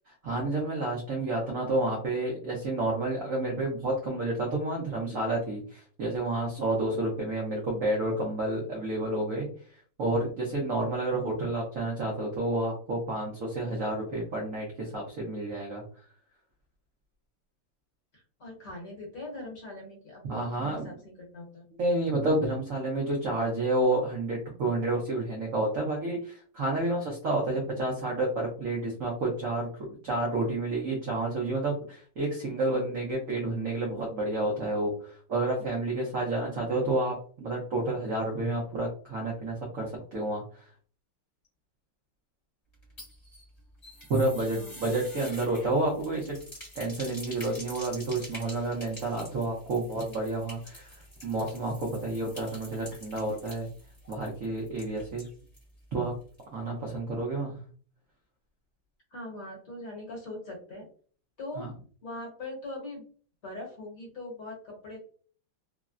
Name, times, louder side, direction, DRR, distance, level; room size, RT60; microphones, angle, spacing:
voice 1, 0.2-15.8 20.3-20.9 21.8-29.7 30.0-40.6 44.1-46.3 46.8-51.0 51.2-53.7 54.1-55.3 55.9-56.2 56.5-57.6 61.6-61.7, right 2 dB, 80° right, -2 dB, 0.7 m, -30 dB
voice 2, 18.1-21.7 44.4-44.8 59.1-60.9 61.4-61.7 62.0-63.1 63.4-65.0, left 2 dB, 50° left, -2 dB, 1.2 m, -41 dB
sound 1, 42.7-55.7 56.0-56.1 56.4-56.5, equal, 25° left, 0.9 m, -47 dB
3.5 x 2.0 x 2.4 m, 0.43 s
omnidirectional pair, 2.3 m